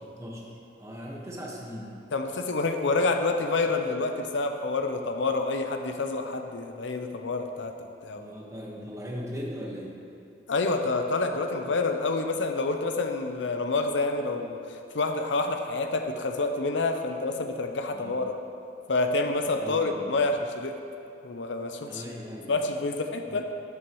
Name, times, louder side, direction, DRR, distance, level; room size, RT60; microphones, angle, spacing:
voice 1, 0.0-0.4 0.8-2.0 8.1-10.0 11.6-11.7 17.9-18.2 19.5-20.1 21.8-22.6 23.2-23.4, equal, 15° right, -3 dB, 1.4 m, -39 dB
voice 2, 2.1-8.2 10.5-18.4 18.9-20.8 21.2-22.0 22.5-23.5, left 3 dB, 85° left, 5 dB, 0.7 m, -28 dB
13.0 x 9.0 x 3.1 m, 2.6 s
head